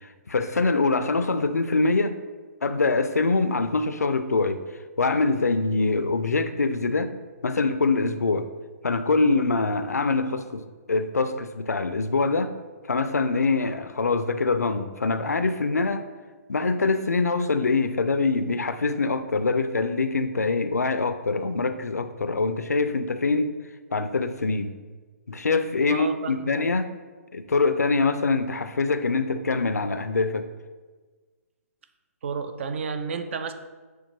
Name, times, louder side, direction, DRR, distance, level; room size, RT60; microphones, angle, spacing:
voice 1, 0.0-2.1 2.6-4.6 5.0-7.1 7.4-8.5 8.8-10.6 10.9-12.5 12.9-16.1 16.5-23.5 23.9-24.7 25.3-26.9 27.3-30.5, left 3 dB, 85° left, 10 dB, 0.4 m, -24 dB
voice 2, 25.9-26.5 32.2-33.5, right 5 dB, 50° right, 9 dB, 0.4 m, -31 dB
6.6 x 2.2 x 3.0 m, 1.3 s
figure-of-eight pair, 130°, 9 cm